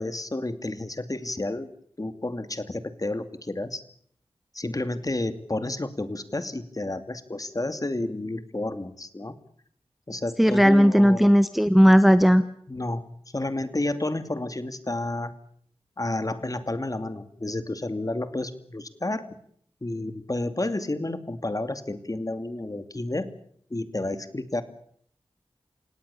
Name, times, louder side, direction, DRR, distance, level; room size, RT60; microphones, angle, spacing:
voice 1, 0.0-1.7 2.0-3.8 4.5-9.4 10.1-11.3 12.7-13.0 13.3-15.3 16.0-19.3 19.8-23.3 23.7-24.6, left 2 dB, 35° left, 10 dB, 2.5 m, -31 dB
voice 2, 10.4-12.4, equal, ahead, 12 dB, 1.2 m, -16 dB
28.5 x 18.0 x 7.0 m, 0.63 s
cardioid pair, 45°, 10 cm